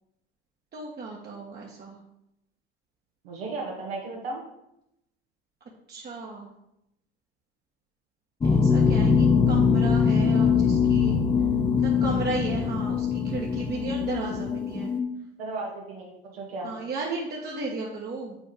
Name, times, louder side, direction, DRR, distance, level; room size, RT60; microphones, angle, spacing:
voice 1, 0.7-2.0 5.9-6.5 8.4-11.2 11.8-14.9 16.6-18.4, right 3 dB, 35° right, -2 dB, 1.5 m, -34 dB
voice 2, 3.2-4.4 15.4-16.7, right 3 dB, 80° right, -3 dB, 2.3 m, -35 dB
sound 1, 8.4-15.0, left 6 dB, 15° left, 0.9 m, -22 dB
8.7 x 4.3 x 5.2 m, 0.84 s
hypercardioid pair, 80°, 30 cm